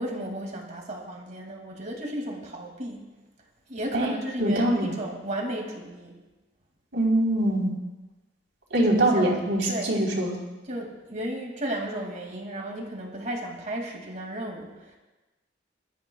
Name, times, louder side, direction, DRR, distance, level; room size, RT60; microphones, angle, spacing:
voice 1, 0.0-3.1 3.7-6.2 8.8-9.3 9.7-9.9 10.7-15.0, right 1 dB, 40° right, 1 dB, 2.4 m, -34 dB
voice 2, 4.4-4.9 6.9-7.7 8.7-10.3, right 1 dB, 75° right, -2 dB, 3.8 m, -23 dB
23.0 x 13.0 x 2.4 m, 1.1 s
head